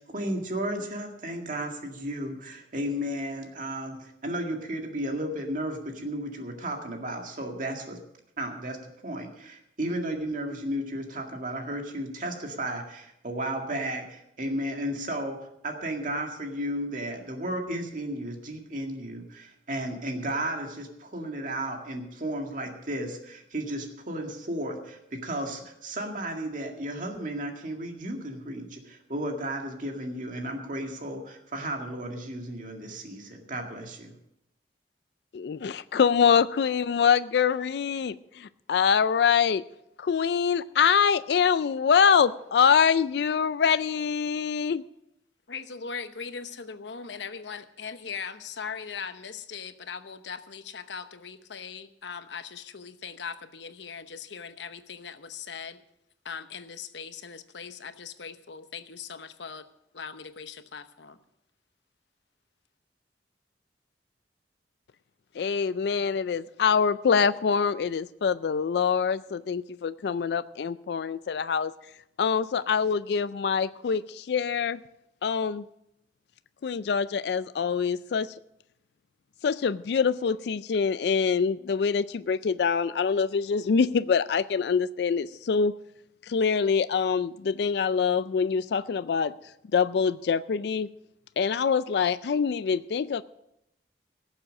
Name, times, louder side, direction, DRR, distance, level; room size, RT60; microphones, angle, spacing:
voice 1, 0.0-8.0 8.4-8.8 9.0-34.1, right 1 dB, 50° right, 3 dB, 2.0 m, -34 dB
voice 2, 35.3-39.6 40.0-44.8 65.4-71.7 72.2-74.8 75.2-75.6 76.6-78.3 79.4-85.7 86.2-89.3 89.7-90.9 91.4-93.2, left 6 dB, 65° left, 14 dB, 0.4 m, -25 dB
voice 3, 45.5-55.8 56.2-59.7 59.9-61.2, left 6 dB, 85° left, 10 dB, 0.9 m, -40 dB
17.0 x 7.4 x 6.3 m, 0.81 s
head